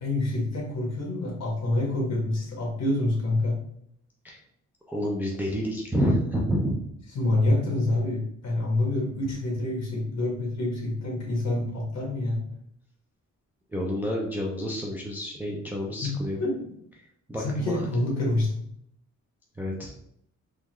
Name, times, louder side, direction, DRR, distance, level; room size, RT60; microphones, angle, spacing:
voice 1, 0.0-3.6 7.1-12.4 16.0-16.1 16.4-16.6 17.4-18.6, left 2 dB, 55° left, -2 dB, 1.3 m, -27 dB
voice 2, 4.9-6.7 13.7-16.4 17.3-18.0 19.6-19.9, equal, 5° right, -2 dB, 0.3 m, -29 dB
3.6 x 2.2 x 3.0 m, 0.70 s
wide cardioid pair, 170°, 31 cm